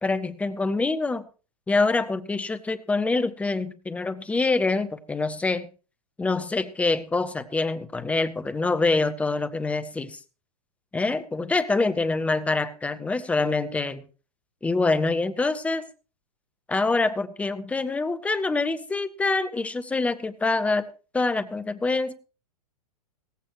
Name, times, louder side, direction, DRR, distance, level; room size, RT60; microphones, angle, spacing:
voice 1, 0.0-1.2 1.7-5.7 6.2-10.2 10.9-14.0 14.6-15.8 16.7-20.9 21.1-22.1, left 3 dB, 5° left, 12 dB, 0.8 m, -25 dB
17.0 x 15.0 x 3.0 m, 0.34 s
figure-of-eight pair, 105°, 19 cm